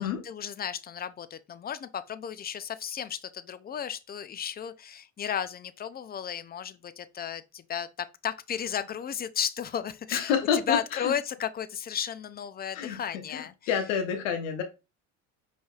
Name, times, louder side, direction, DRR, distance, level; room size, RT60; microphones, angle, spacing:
voice 1, 0.0-13.8, left 8 dB, 25° left, 0.5 m, -34 dB
voice 2, 10.1-11.1 12.7-13.0 13.3-14.6, left 7 dB, 90° left, 0.9 m, -28 dB
5.1 x 3.4 x 2.4 m
supercardioid pair, 80°, 37 cm